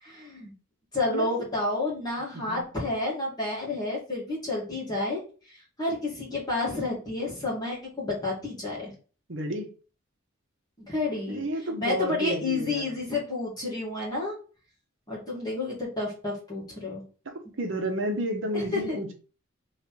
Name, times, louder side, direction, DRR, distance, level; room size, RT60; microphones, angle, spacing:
voice 1, 0.0-0.5 0.9-8.9 10.9-11.4 11.8-14.4 15.1-17.1 18.5-19.0, left 2 dB, 20° left, -6 dB, 1.8 m, -30 dB
voice 2, 9.3-9.7 11.3-12.9 17.6-19.1, right 1 dB, 65° right, 4 dB, 1.0 m, -31 dB
3.3 x 3.2 x 4.4 m, 0.37 s
head